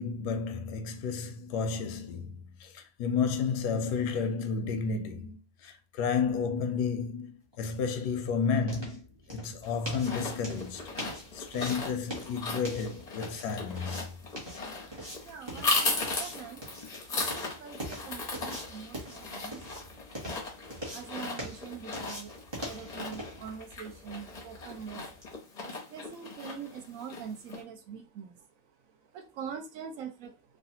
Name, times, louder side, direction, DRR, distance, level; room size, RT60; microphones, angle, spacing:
voice 1, 0.0-9.0 9.3-10.9 11.3-14.1, left 5 dB, 80° left, 1.1 m, -32 dB
sound 1, 7.5-25.3, equal, 20° right, 0.8 m, -44 dB
sound 2, 9.7-27.6, left 3 dB, 35° left, 0.6 m, -37 dB
voice 2, 15.2-16.6 17.1-19.9 20.5-20.6 20.9-28.5 29.0-30.6, right 7 dB, 65° right, 1.0 m, -44 dB
3.2 x 2.4 x 2.7 m
omnidirectional pair, 1.7 m